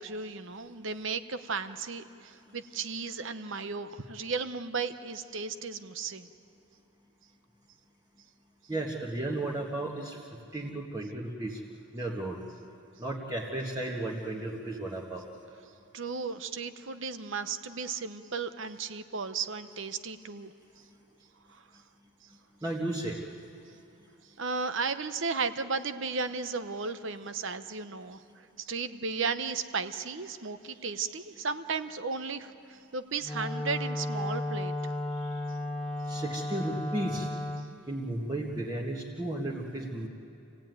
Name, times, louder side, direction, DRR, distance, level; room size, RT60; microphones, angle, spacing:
voice 1, 0.0-6.3 15.9-20.5 21.5-21.6 24.4-28.2 28.7-34.7, right 4 dB, 60° right, 10 dB, 0.9 m, -35 dB
voice 2, 8.7-10.2 10.5-11.6 11.9-12.4 13.0-15.2 22.6-23.2 36.1-37.3 37.9-40.1, right 1 dB, 15° right, -4 dB, 1.6 m, -34 dB
Wind instrument woodwind instrument, 33.2-37.7, left 1 dB, 5° left, 1.0 m, -34 dB
27.5 x 17.0 x 9.4 m, 2.8 s
head